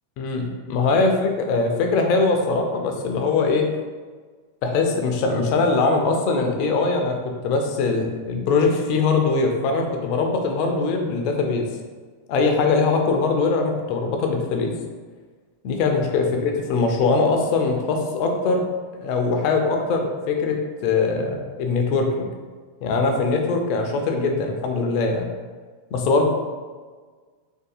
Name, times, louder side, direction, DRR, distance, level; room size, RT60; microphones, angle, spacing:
voice 1, 0.2-3.7 4.6-11.7 12.3-14.8 15.6-18.7 18.9-22.3 22.8-25.3 25.9-26.3, left 3 dB, 45° left, 3 dB, 0.5 m, -22 dB
3.5 x 2.6 x 2.5 m, 1.5 s
figure-of-eight pair, 90°, 0 cm